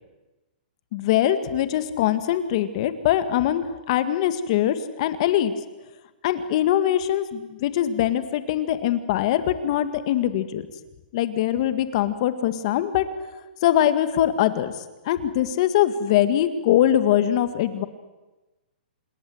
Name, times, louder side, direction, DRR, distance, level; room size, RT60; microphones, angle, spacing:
voice 1, 0.9-5.5 6.2-10.7 11.1-13.1 13.6-14.7 15.1-17.9, left 11 dB, 35° left, 11 dB, 1.8 m, -22 dB
27.0 x 21.0 x 7.9 m, 1.1 s
hypercardioid pair, 165°, 5 cm